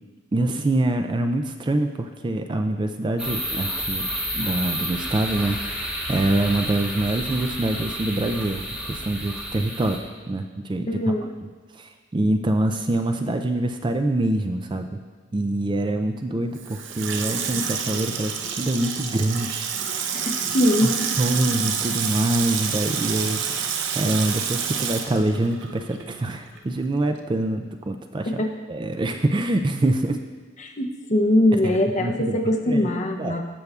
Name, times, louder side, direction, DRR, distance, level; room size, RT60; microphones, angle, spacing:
voice 1, 0.3-4.1 4.3-8.6 8.9-10.0 10.3-11.1 11.8-15.0 15.3-20.2 20.8-20.9 21.2-28.4 28.7-30.2 31.6-32.4 32.7-32.9 33.2-33.4, right 1 dB, 25° right, 6 dB, 0.3 m, -25 dB
sound 1, 3.2-10.0, equal, 5° right, 0.9 m, -30 dB
voice 2, 10.9-11.3 20.1-21.0 28.3-28.5 30.6-33.4, left 1 dB, 35° left, 4 dB, 0.6 m, -22 dB
Water tap faucet / Sink (filling or washing), 16.5-26.3 26.6-26.7, right 7 dB, 70° right, 0.6 m, -28 dB
14.5 x 6.8 x 2.4 m, 1.5 s
head